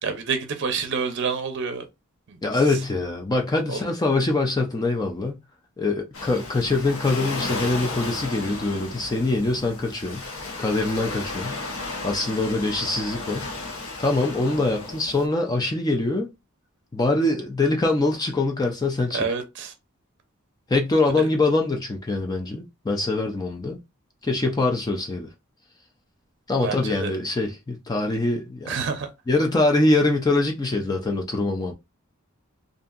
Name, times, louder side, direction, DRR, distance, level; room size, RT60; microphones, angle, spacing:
voice 1, 0.0-1.8 2.3-2.4 2.7-2.8 3.7-3.8 19.1-19.7 21.2-21.3 26.6-27.1 28.7-29.1, right 5 dB, 55° right, 0.6 m, -28 dB
voice 2, 2.4-5.4 5.8-10.2 10.6-11.6 12.0-13.5 14.0-16.3 16.9-19.2 20.7-23.8 24.2-25.3 26.5-28.7 29.3-31.7, left 2 dB, 20° left, 0.4 m, -23 dB
Waves surf, 6.1-15.2, left 3 dB, 75° left, 0.9 m, -34 dB
2.7 x 2.5 x 2.4 m
head